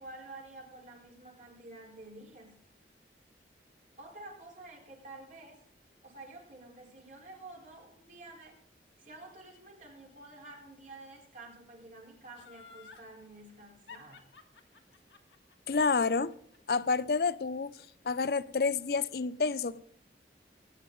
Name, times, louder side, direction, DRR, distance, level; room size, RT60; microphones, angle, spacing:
voice 1, 0.0-2.6 4.0-5.6 6.0-8.6 9.0-14.2, right 2 dB, 45° right, 4.3 m, -50 dB
Laughter, 12.4-13.1 13.9-17.0 17.3-17.4, left 6 dB, 85° left, 2.0 m, -53 dB
voice 2, 15.7-16.3 16.7-17.7 18.0-19.8, left 4 dB, 55° left, 0.5 m, -29 dB
20.0 x 10.5 x 3.9 m
head